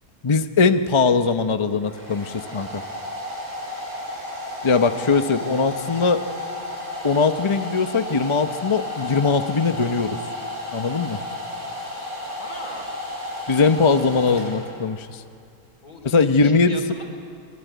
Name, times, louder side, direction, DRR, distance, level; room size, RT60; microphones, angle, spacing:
voice 1, 0.2-2.8 4.6-6.2 7.0-10.2 10.7-11.2 13.5-15.2 16.0-16.8, left 4 dB, 30° left, 9 dB, 0.6 m, -20 dB
Domestic sounds home sounds, 1.3-15.0, left 1 dB, 75° right, 8.7 m, -33 dB
voice 2, 12.4-12.9 15.8-17.0, left 2 dB, 65° left, 2 dB, 4.3 m, -39 dB
26.5 x 22.0 x 9.3 m, 2.3 s
omnidirectional pair, 1.6 m